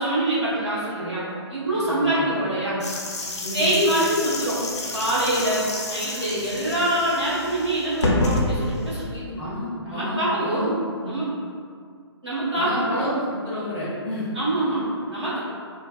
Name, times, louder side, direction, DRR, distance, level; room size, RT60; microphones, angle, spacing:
voice 1, 0.0-2.8 3.5-4.6 4.9-9.2 9.8-10.7 11.0-11.3 12.2-13.1 14.3-15.4, right 1 dB, 90° right, -10 dB, 1.4 m, -25 dB
voice 2, 1.9-2.2 3.4-3.7 9.4-10.7 11.0-11.1 12.6-13.2 13.5-14.3, left 1 dB, 5° left, -10 dB, 0.4 m, -30 dB
sound 1, 2.8-9.0, left 1 dB, 85° left, 0.5 m, -29 dB
3.1 x 2.2 x 2.3 m, 2.1 s
figure-of-eight pair, 135°, 14 cm